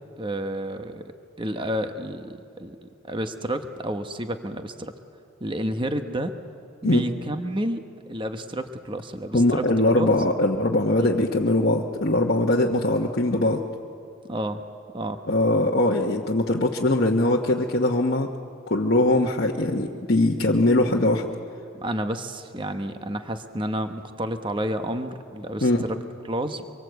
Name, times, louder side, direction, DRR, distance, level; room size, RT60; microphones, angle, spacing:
voice 1, 0.2-1.0 1.4-4.9 5.4-6.3 6.8-9.6 10.0-10.1 11.0-11.1 14.3-14.6 14.9-15.2 21.7-25.7 26.2-26.6, right 1 dB, 25° right, 7 dB, 1.0 m, -30 dB
voice 2, 9.3-13.6 15.3-18.3 18.7-21.3 25.6-25.8, left 1 dB, 50° left, -2 dB, 1.2 m, -21 dB
25.0 x 23.5 x 8.0 m, 2.6 s
head